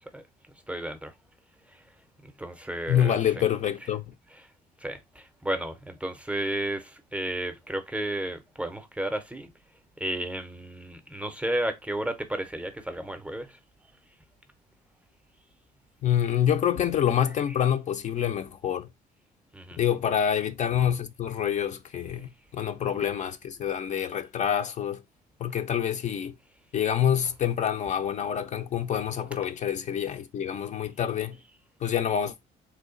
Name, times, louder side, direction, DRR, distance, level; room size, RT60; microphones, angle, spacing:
voice 1, 0.7-1.1 1.7-1.9 2.2-3.2 4.4-4.5 4.8-9.5 10.0-13.6 17.5-17.6 19.5-19.8, right 1 dB, 5° right, 0.5 m, -33 dB
voice 2, 2.9-4.1 16.0-18.9 19.8-25.0 25.4-26.3 26.7-31.4 31.8-32.3, left 9 dB, 45° left, 0.4 m, -27 dB
3.1 x 2.2 x 3.7 m
cardioid pair, 110°, 17 cm